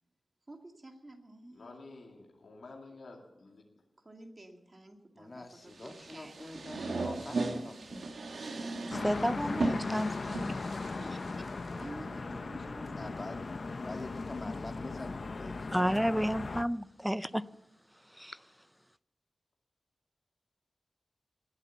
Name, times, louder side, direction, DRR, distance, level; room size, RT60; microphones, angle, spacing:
voice 1, 0.5-1.7 4.0-7.1 11.7-13.8, right 1 dB, 35° right, 2.2 m, -50 dB
voice 2, 1.5-3.6, left 3 dB, 85° left, 2.4 m, -50 dB
voice 3, 5.1-8.2 8.8-9.5 11.9-12.2 13.0-13.4 13.8-16.3, left 2 dB, 35° left, 1.9 m, -47 dB
sound 1, 5.7-11.8, right 2 dB, 80° right, 1.5 m, -37 dB
voice 4, 8.8-10.1 15.7-17.4 18.2-18.4, equal, ahead, 0.5 m, -31 dB
sound 2, 8.9-16.6, left 3 dB, 55° left, 0.6 m, -38 dB
19.5 x 8.3 x 7.0 m
wide cardioid pair, 100°, 0 cm